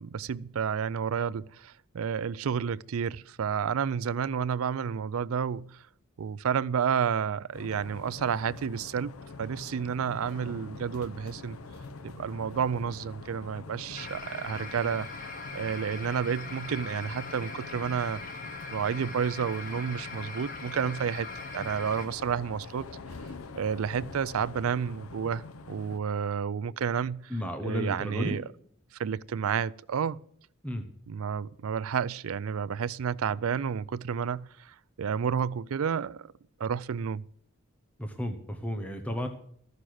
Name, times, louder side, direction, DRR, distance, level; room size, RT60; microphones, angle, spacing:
voice 1, 0.0-5.8 6.2-11.6 12.0-15.3 15.5-18.2 18.7-21.3 21.5-22.9 23.5-27.4 27.6-28.4 29.0-30.2 31.1-36.3 36.6-37.2, right 7 dB, 80° right, 0.4 m, -30 dB
sound 1, 7.5-26.0, left 3 dB, 90° left, 0.7 m, -45 dB
sound 2, 13.9-22.1, left 4 dB, 40° left, 1.3 m, -41 dB
voice 2, 27.3-28.3 30.6-30.8 38.0-39.3, equal, 5° left, 0.8 m, -33 dB
14.0 x 6.6 x 7.7 m
head